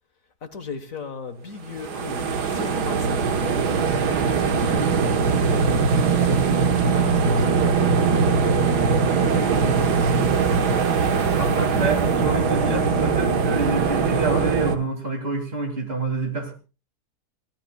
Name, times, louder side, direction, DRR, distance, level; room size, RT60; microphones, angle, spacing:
voice 1, 0.4-4.9 6.1-9.1 9.9-10.6, left 5 dB, 55° left, 9 dB, 1.8 m, -38 dB
sound 1, 1.7-14.8, right 5 dB, 85° right, 1.9 m, -21 dB
voice 2, 11.4-16.5, right 2 dB, 35° right, 3 dB, 3.0 m, -28 dB
27.5 x 16.0 x 2.3 m, 0.33 s
omnidirectional pair, 1.7 m